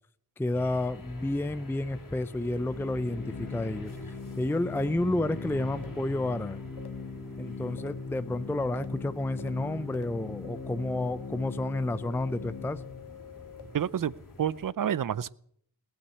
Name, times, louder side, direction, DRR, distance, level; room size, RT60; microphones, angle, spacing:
voice 1, 0.4-6.6 7.4-12.8, left 1 dB, 5° left, 13 dB, 0.5 m, -31 dB
sound 1, 0.5-14.7, left 2 dB, 50° left, 2.8 m, -47 dB
Organ, 2.3-13.1, left 4 dB, 30° left, 2.8 m, -40 dB
sound 2, 4.7-4.8 5.7-5.8 6.8-6.9 7.8-7.9 8.7-8.8 9.4-9.5 9.9-10.0 10.4-13.6, left 7 dB, 65° left, 1.5 m, -47 dB
voice 2, 13.7-14.1 14.4-15.3, right 9 dB, 50° right, 20 dB, 0.6 m, -29 dB
18.5 x 8.7 x 8.4 m, 0.67 s
wide cardioid pair, 70°, 42 cm